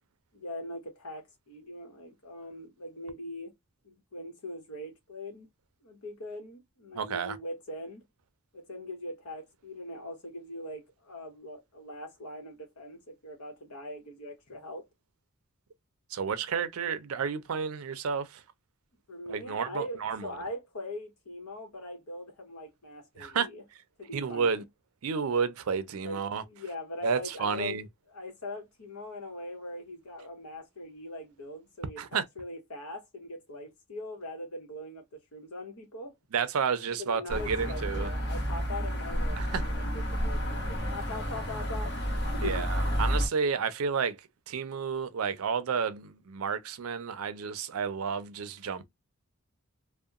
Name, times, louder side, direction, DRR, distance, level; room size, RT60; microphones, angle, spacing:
voice 1, 0.3-3.5 3.8-5.5 5.8-8.0 8.5-14.9 19.1-23.6 24.0-24.6 26.0-27.8 28.1-36.1 37.0-42.7 43.1-43.2, left 1 dB, 85° left, 1.0 m, -41 dB
voice 2, 6.9-7.4 16.1-18.4 19.3-20.3 23.2-23.5 24.1-24.6 25.0-26.4 27.0-27.8 32.0-32.2 36.3-38.1 39.4-39.6 42.4-48.8, right 6 dB, 75° right, 0.4 m, -31 dB
sound 1, 37.3-43.3, equal, 50° left, 1.0 m, -31 dB
2.7 x 2.1 x 2.3 m
head